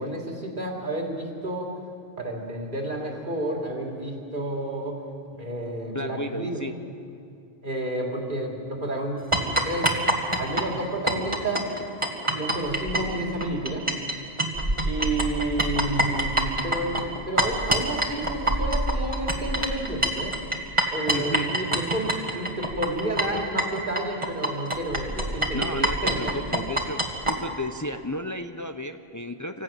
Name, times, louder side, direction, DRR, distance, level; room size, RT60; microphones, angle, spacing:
voice 1, 0.0-1.7 2.2-5.0 5.3-6.6 7.6-9.3 9.6-9.9 10.4-11.7 12.2-13.9 14.8-17.0 17.3-20.4 20.9-26.3, right 1 dB, 50° right, 0 dB, 3.3 m, -30 dB
voice 2, 5.9-6.7 21.1-21.5 25.5-27.0 27.3-29.6, left 1 dB, 20° left, 8 dB, 0.6 m, -33 dB
sound 1, 9.3-14.1 14.4-27.4, right 1 dB, 30° right, 2.1 m, -25 dB
25.0 x 14.0 x 9.0 m, 2.4 s
omnidirectional pair, 1.1 m